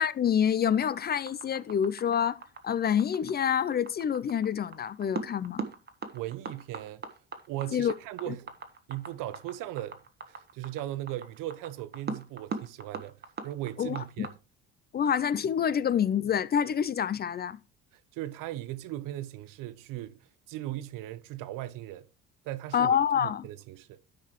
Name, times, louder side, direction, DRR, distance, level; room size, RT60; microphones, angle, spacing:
voice 1, 0.0-5.7 7.7-7.9 8.3-8.4 13.8-14.0 14.9-17.6 22.7-23.5, left 8 dB, 30° left, 0.4 m, -27 dB
sound 1, 0.7-14.3, right 4 dB, 30° right, 1.1 m, -39 dB
voice 2, 6.1-7.0 7.5-8.5 8.9-10.0 10.3-13.2 13.4-14.3 17.9-20.2 20.5-22.1 22.4-24.0, right 14 dB, 75° right, 0.7 m, -38 dB
12.5 x 4.7 x 3.0 m
supercardioid pair, 85°, 33 cm